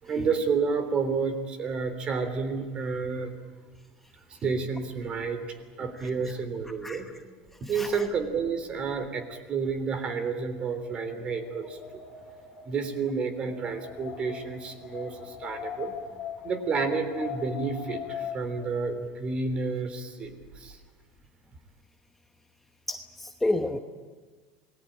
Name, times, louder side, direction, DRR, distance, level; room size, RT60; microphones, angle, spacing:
voice 1, 0.0-3.4 4.3-7.1 7.6-12.0 12.6-15.9 16.4-20.8, right 5 dB, 30° right, 10 dB, 3.4 m, -30 dB
voice 2, 7.8-8.1 22.9-23.8, left 2 dB, 5° left, 5 dB, 1.1 m, -30 dB
Wind, 10.7-18.7, left 8 dB, 40° left, 2.0 m, -40 dB
28.0 x 20.0 x 8.8 m, 1.4 s
cardioid pair, 145°, 3 cm